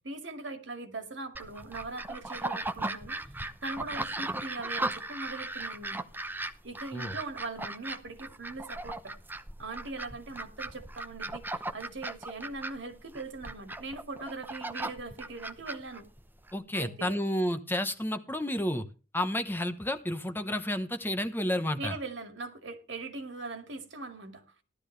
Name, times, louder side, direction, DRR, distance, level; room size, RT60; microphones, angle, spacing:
voice 1, 0.0-3.2 3.6-6.0 6.6-9.2 9.6-16.1 16.7-17.2 21.8-24.4, right 3 dB, 70° right, 2.3 m, -40 dB
sound 1, 1.3-16.5, right 2 dB, 10° right, 0.8 m, -38 dB
voice 2, 16.5-18.8 19.1-22.0, left 1 dB, 10° left, 1.0 m, -31 dB
15.5 x 12.0 x 3.3 m
head